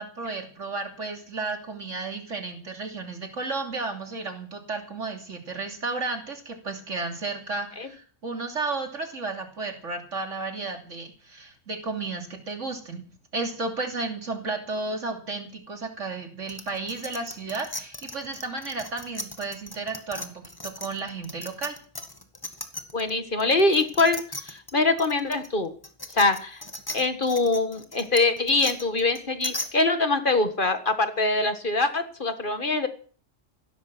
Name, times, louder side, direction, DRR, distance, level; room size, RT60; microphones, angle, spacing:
voice 1, 0.0-13.0 13.3-21.8, right 3 dB, 80° right, 5 dB, 3.3 m, -33 dB
sound 1, 16.5-23.1 23.4-29.7, left 1 dB, 20° left, 1.9 m, -37 dB
voice 2, 22.9-25.7 26.1-26.6 26.9-32.9, left 3 dB, 45° left, 9 dB, 1.8 m, -24 dB
16.5 x 13.5 x 6.1 m, 0.43 s
omnidirectional pair, 1.3 m